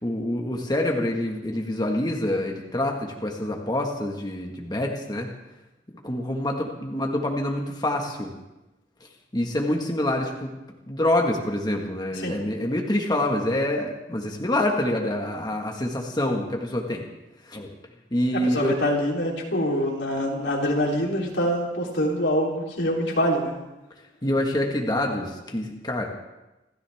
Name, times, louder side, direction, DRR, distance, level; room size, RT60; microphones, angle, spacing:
voice 1, 0.0-5.3 6.0-8.3 9.3-10.5 10.9-17.0 17.5-17.7 18.1-18.7 24.2-26.1, left 1 dB, 25° left, 1 dB, 1.7 m, -26 dB
voice 2, 18.4-23.6, equal, 85° left, -2 dB, 3.6 m, -25 dB
28.0 x 13.5 x 3.6 m, 1.0 s
head